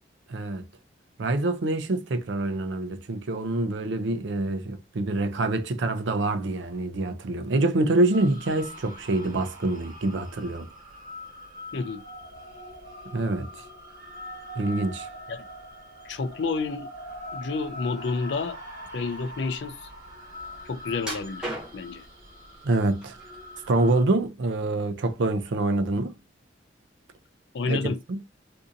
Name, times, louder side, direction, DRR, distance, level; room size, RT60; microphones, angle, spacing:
voice 1, 0.3-0.6 1.2-10.7 13.1-13.5 14.6-15.1 22.6-23.2 23.7-26.1 27.7-28.2, right 2 dB, 70° right, 0.5 m, -26 dB
sound 1, 8.1-24.0, left 1 dB, 45° right, 1.5 m, -43 dB
voice 2, 11.7-12.0 15.3-15.4 16.0-16.9 17.3-18.6 18.9-19.9 20.7-22.0 27.5-28.0, left 4 dB, 65° left, 0.4 m, -30 dB
sound 2, 21.0-22.0 22.7-23.4 23.8-24.7 25.0-25.2 25.8-25.9, right 1 dB, 5° right, 0.9 m, -37 dB
3.7 x 2.6 x 2.6 m
head